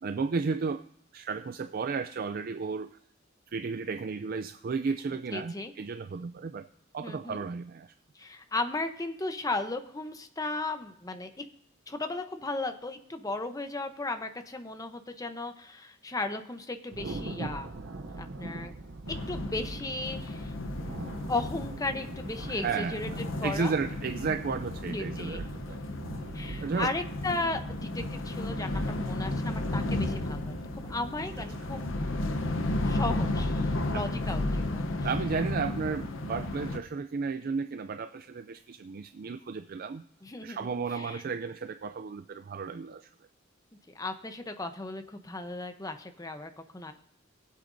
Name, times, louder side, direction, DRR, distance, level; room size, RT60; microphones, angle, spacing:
voice 1, 0.0-0.8 1.1-3.0 3.5-6.7 6.9-7.9 22.5-25.8 26.6-26.9 33.8-34.0 35.0-40.0 40.4-43.1, right 5 dB, 50° right, 9 dB, 0.4 m, -33 dB
voice 2, 5.3-5.7 7.0-7.4 8.1-11.4 11.9-17.7 18.2-18.7 19.3-20.5 21.3-23.1 23.4-23.7 24.9-25.4 26.3-31.8 32.8-35.1 40.2-41.2 43.9-46.9, left 2 dB, 20° left, 7 dB, 0.8 m, -35 dB
Thunder, 16.9-32.9, right 2 dB, 65° right, 0.7 m, -43 dB
sound 1, 19.1-36.8, left 2 dB, 70° left, 0.9 m, -33 dB
21.5 x 8.0 x 2.7 m, 0.70 s
head